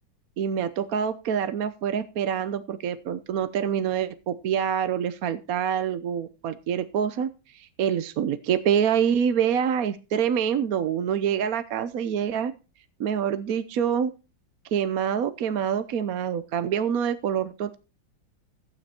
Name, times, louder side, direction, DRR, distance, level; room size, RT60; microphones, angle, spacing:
voice 1, 0.4-12.5 13.0-14.1 14.7-17.8, right 8 dB, 60° right, 12 dB, 1.1 m, -26 dB
15.0 x 9.1 x 4.3 m, 0.31 s
omnidirectional pair, 2.1 m